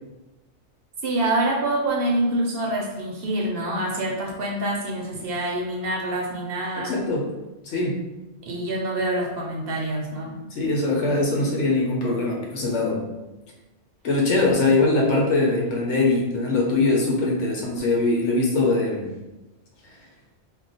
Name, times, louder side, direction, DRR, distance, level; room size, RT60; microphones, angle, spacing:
voice 1, 1.0-6.9 8.5-10.4, right 1 dB, 60° right, -1 dB, 0.8 m, -26 dB
voice 2, 6.8-7.3 7.6-8.0 10.5-13.0 14.0-19.1, left 2 dB, 80° left, -1 dB, 0.9 m, -22 dB
2.3 x 2.2 x 3.8 m, 1.0 s
omnidirectional pair, 1.2 m